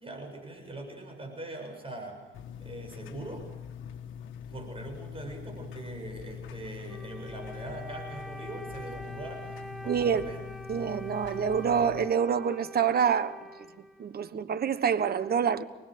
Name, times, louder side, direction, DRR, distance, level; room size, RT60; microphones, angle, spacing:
voice 1, 0.0-2.2 2.6-3.5 4.5-10.4, right 2 dB, 25° right, 7.6 m, -42 dB
sound 1, 2.3-12.1, left 8 dB, 75° left, 1.5 m, -43 dB
Wind instrument woodwind instrument, 6.9-14.4, equal, ahead, 1.1 m, -46 dB
voice 2, 9.8-10.3 10.7-13.4 14.0-15.6, right 7 dB, 50° right, 1.2 m, -27 dB
28.0 x 20.0 x 6.7 m
cardioid pair, 90°, 20 cm